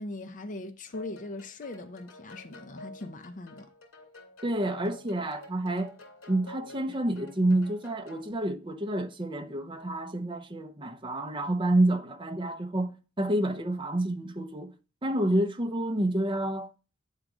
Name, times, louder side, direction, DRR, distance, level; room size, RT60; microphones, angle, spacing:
voice 1, 0.0-3.7, left 2 dB, 35° left, 0.6 m, -40 dB
sound 1, 0.9-8.3, left 1 dB, 75° left, 2.4 m, -49 dB
voice 2, 4.4-5.9 6.3-12.9 13.2-14.7 15.0-16.7, right 1 dB, 20° right, 0.7 m, -28 dB
9.0 x 3.8 x 4.9 m
head